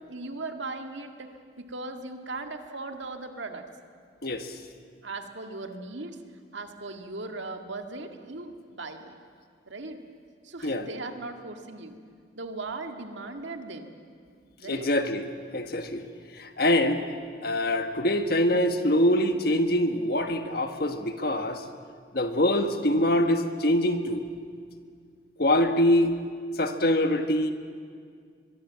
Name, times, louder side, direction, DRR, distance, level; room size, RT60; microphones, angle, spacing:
voice 1, 0.0-3.6 5.0-6.2 6.5-9.2 9.7-10.0 10.4-11.9 12.3-13.9 14.6-14.9, right 3 dB, 75° right, 5 dB, 1.9 m, -38 dB
voice 2, 4.2-4.6 10.6-10.9 14.6-16.0 16.3-17.0 17.4-21.6 22.1-24.2 25.4-26.1 26.6-27.5, left 1 dB, 50° left, 7 dB, 1.4 m, -24 dB
23.5 x 22.5 x 7.5 m, 2.1 s
head